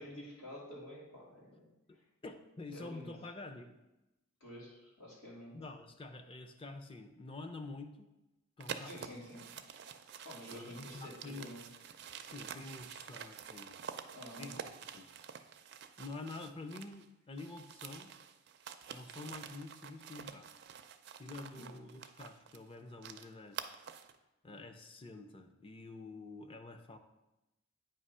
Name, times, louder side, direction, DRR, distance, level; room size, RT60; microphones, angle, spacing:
voice 1, 0.0-2.0 2.7-3.2 4.4-5.6 8.8-9.5 10.2-11.7 14.1-14.5 21.5-21.8, left 1 dB, 80° left, -5 dB, 2.5 m, -50 dB
voice 2, 1.9-3.7 5.5-8.1 8.6-9.1 10.5-11.6 12.2-13.7 14.4-14.6 14.9-15.1 16.0-18.1 18.9-20.5 21.2-23.8 24.4-27.0, left 3 dB, 25° left, 6 dB, 0.5 m, -48 dB
sound 1, 8.6-17.0 17.3-24.2, right 7 dB, 55° right, 0.4 m, -48 dB
8.7 x 2.9 x 5.5 m, 0.95 s
head